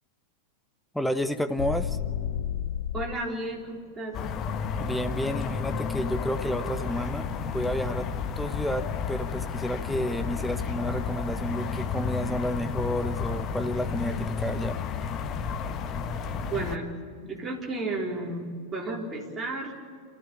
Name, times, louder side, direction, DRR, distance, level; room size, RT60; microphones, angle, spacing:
voice 1, 0.9-2.0 4.8-8.1 8.4-14.8, equal, 5° left, 9 dB, 1.1 m, -31 dB
sound 1, 1.6-3.3, left 9 dB, 55° left, 1.1 m, -31 dB
voice 2, 2.9-4.2 16.5-16.9 17.2-19.8, right 2 dB, 15° right, -3 dB, 4.3 m, -33 dB
sound 2, 4.1-16.8, left 6 dB, 30° left, 1.3 m, -32 dB
28.0 x 14.5 x 8.5 m, 2.1 s
figure-of-eight pair, 90°, 0 cm